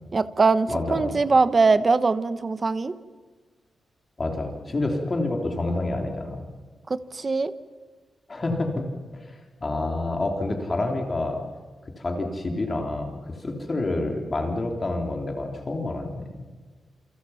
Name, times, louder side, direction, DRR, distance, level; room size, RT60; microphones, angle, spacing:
voice 1, 0.1-2.9 6.9-7.5, right 4 dB, 25° right, 13 dB, 1.1 m, -21 dB
voice 2, 0.7-1.1 4.2-6.4 8.3-8.9 9.1-11.4 12.0-16.3, left 2 dB, 25° left, 3 dB, 3.5 m, -28 dB
28.5 x 28.0 x 5.8 m, 1.4 s
wide cardioid pair, 175°, 0 cm